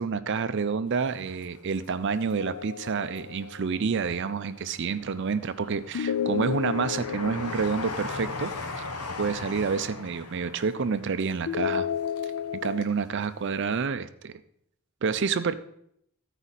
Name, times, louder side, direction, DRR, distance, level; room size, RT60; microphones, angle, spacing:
voice 1, 0.0-8.5 8.8-8.9 9.2-11.9 12.2-14.4 15.0-15.5, right 5 dB, 55° right, 12 dB, 0.4 m, -28 dB
Train, 1.0-2.3 2.7-3.7 4.2-13.0 13.2-13.3, left 3 dB, 90° left, 1.1 m, -39 dB
sound 1, 2.4-3.9 5.9-9.1 11.5-12.8, left 9 dB, 65° left, 0.4 m, -32 dB
14.5 x 4.9 x 4.1 m, 0.71 s
head